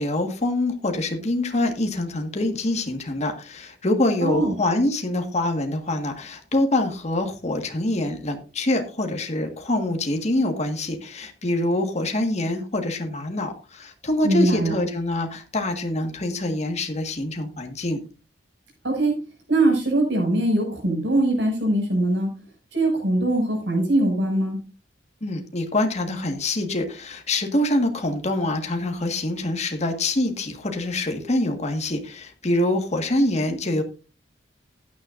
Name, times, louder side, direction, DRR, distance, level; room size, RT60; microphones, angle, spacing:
voice 1, 0.0-18.0 25.2-33.8, left 1 dB, 40° left, 4 dB, 1.6 m, -25 dB
voice 2, 4.2-4.5 14.2-14.7 18.8-19.1 19.5-22.3 22.7-24.6, right 1 dB, 80° right, 2 dB, 6.4 m, -21 dB
15.0 x 9.8 x 2.6 m, 0.33 s
head